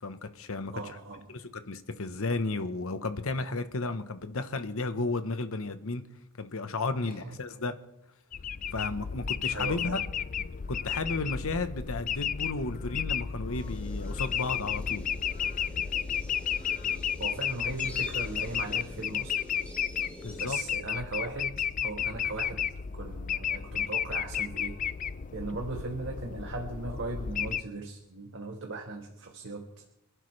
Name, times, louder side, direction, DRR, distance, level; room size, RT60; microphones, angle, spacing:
voice 1, 0.0-1.0 1.3-6.0 6.4-7.8 8.7-10.0 10.7-15.0 20.2-20.6, left 3 dB, 70° left, 1.1 m, -33 dB
voice 2, 0.7-1.3 7.0-7.3 9.5-10.0 17.2-19.4 20.4-22.7 22.9-24.8 25.3-29.8, right 3 dB, 60° right, 1.6 m, -38 dB
sound 1, 8.3-27.6, left 8 dB, 35° left, 0.4 m, -33 dB
sound 2, 13.5-20.4, left 1 dB, 5° left, 2.8 m, -47 dB
27.0 x 11.5 x 3.3 m
head